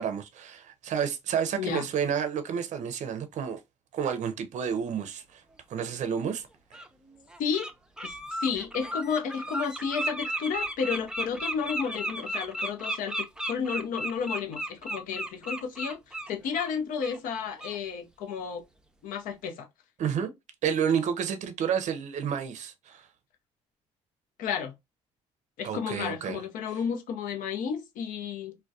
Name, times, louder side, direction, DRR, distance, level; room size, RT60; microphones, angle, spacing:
voice 1, 0.0-3.6 3.9-5.4 5.7-6.4 20.0-20.3 20.6-23.1 25.6-26.4, right 7 dB, 55° right, 0.5 m, -30 dB
voice 2, 1.6-1.9 7.4-7.7 8.0-18.6 19.0-19.7 24.4-24.7 25.6-28.6, left 6 dB, 75° left, 0.6 m, -32 dB
Bird, 5.9-6.0 6.7-6.9 7.3-7.7 8.0-16.7 17.0-17.2 17.6-17.8, right 1 dB, 5° right, 0.5 m, -34 dB
2.3 x 2.1 x 2.6 m
supercardioid pair, 65°, 14 cm